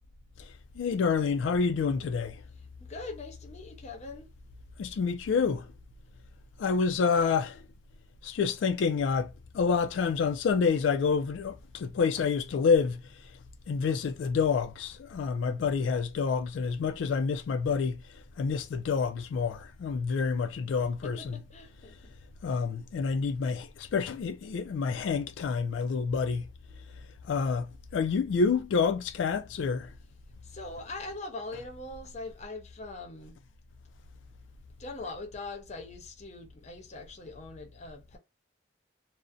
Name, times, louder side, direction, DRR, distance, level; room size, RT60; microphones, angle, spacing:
voice 1, 0.4-2.4 4.8-5.7 6.6-7.6 8.2-13.3 13.7-21.4 22.4-26.5 27.2-29.9, left 5 dB, 90° left, 0.3 m, -28 dB
voice 2, 2.8-4.3 21.0-21.9 30.4-33.4 34.8-38.2, left 3 dB, 40° left, 0.7 m, -42 dB
2.5 x 2.1 x 2.4 m
head